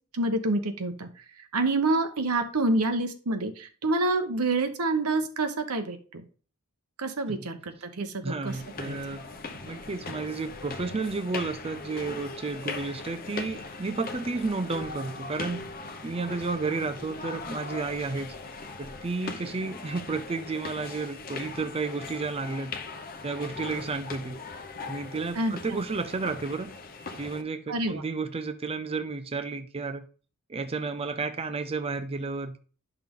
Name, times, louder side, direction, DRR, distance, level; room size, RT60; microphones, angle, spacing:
voice 1, 0.1-1.1 1.5-6.2 7.0-8.5 8.8-9.0 25.4-25.5 27.7-28.0, right 2 dB, 80° right, 1.1 m, -27 dB
voice 2, 8.2-9.2 9.7-15.6 16.0-18.3 18.8-22.7 23.2-24.4 24.9-26.7 27.2-30.1 30.5-32.6, right 3 dB, 25° right, 0.5 m, -32 dB
sound 1, 8.5-27.4, left 3 dB, 40° left, 0.9 m, -40 dB
10.5 x 5.8 x 3.7 m
head